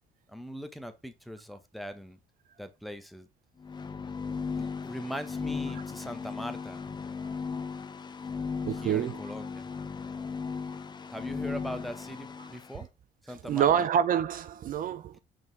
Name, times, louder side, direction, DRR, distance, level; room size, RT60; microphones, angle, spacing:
voice 1, 0.3-2.2 2.6-3.3 4.5-6.8 8.7-9.7 11.1-12.9 13.3-13.7, equal, ahead, 1.2 m, -40 dB
sound 1, 3.6-12.7, left 5 dB, 25° left, 0.7 m, -36 dB
voice 2, 8.6-9.2 12.4-12.5 13.3-15.2, right 9 dB, 55° right, 0.6 m, -27 dB
5.9 x 4.9 x 3.4 m
cardioid pair, 110°, 17 cm